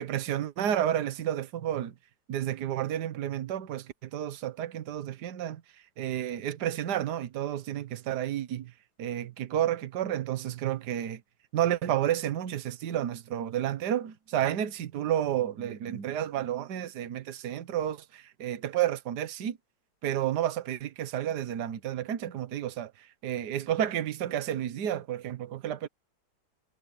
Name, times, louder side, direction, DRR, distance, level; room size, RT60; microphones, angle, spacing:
voice 1, 0.0-1.9 2.3-5.6 6.0-8.7 9.0-11.2 11.5-19.6 20.0-22.9 23.2-25.9, right 11 dB, 65° right, 1.6 m, -31 dB
omnidirectional pair, 2.0 m